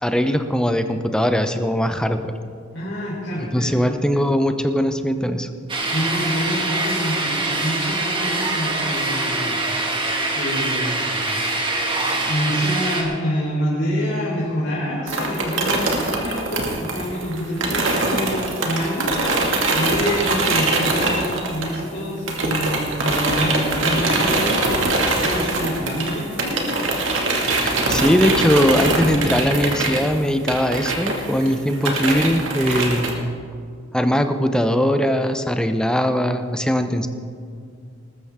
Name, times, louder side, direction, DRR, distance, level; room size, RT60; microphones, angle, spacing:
voice 1, 0.0-2.2 3.5-5.5 27.6-33.3 33.9-37.1, equal, 5° left, 7 dB, 0.7 m, -20 dB
voice 2, 2.7-3.7 5.9-9.6 10.3-11.2 12.3-26.7, equal, 65° left, -7 dB, 4.0 m, -27 dB
sound 1, 5.7-13.0, right 2 dB, 25° right, 2.0 m, -24 dB
sound 2, 15.1-22.0 22.3-33.1, right 2 dB, 75° right, 2.2 m, -23 dB
20.0 x 13.5 x 3.7 m, 2.3 s
head